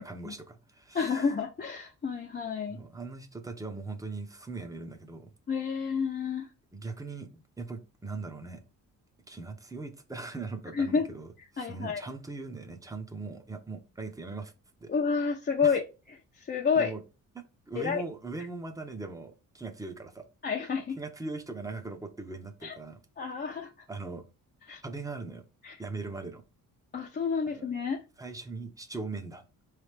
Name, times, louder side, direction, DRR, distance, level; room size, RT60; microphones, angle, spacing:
voice 1, 0.0-1.3 2.7-5.3 6.7-8.6 9.3-14.5 14.8-14.9 15.6-15.8 16.7-17.0 17.3-20.3 21.0-23.0 23.9-24.3 24.8-25.4 25.8-26.4 27.5-27.7 28.2-29.5, right 3 dB, 10° right, 0.7 m, -40 dB
voice 2, 0.9-2.8 5.5-6.5 10.7-11.0 11.6-12.0 14.9-15.8 16.4-16.9 17.8-18.0 20.4-21.0 22.6-22.8 23.2-23.7 24.7-24.8 25.6-25.8 26.9-28.0, left 5 dB, 30° left, 0.6 m, -29 dB
4.7 x 3.2 x 3.3 m
cardioid pair, 135°, 33 cm